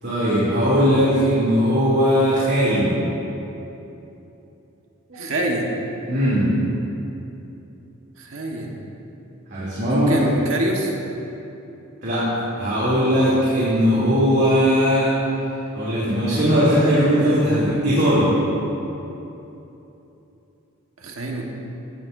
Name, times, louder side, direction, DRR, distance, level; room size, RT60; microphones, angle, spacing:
voice 1, 0.0-3.0 5.1-5.2 6.1-6.6 9.5-10.1 12.0-15.1 15.7-18.4, equal, 50° right, -10 dB, 3.0 m, -19 dB
voice 2, 5.1-5.7 8.2-8.7 9.9-10.9 21.0-21.4, right 1 dB, 75° right, 0 dB, 1.5 m, -25 dB
17.0 x 12.5 x 2.7 m, 3.0 s
head